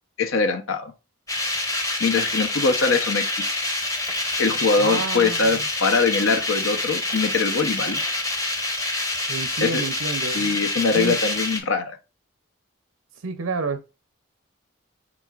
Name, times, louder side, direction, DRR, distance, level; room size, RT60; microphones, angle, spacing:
voice 1, 0.2-0.9 2.0-3.4 4.4-8.0 9.6-9.8 10.3-12.0, left 4 dB, 75° left, 0.7 m, -22 dB
sound 1, 1.3-11.6, left 2 dB, 15° left, 0.8 m, -27 dB
voice 2, 4.8-5.7 9.3-10.7 10.9-11.2 13.2-13.8, right 4 dB, 90° right, 0.6 m, -30 dB
6.2 x 3.7 x 2.3 m
head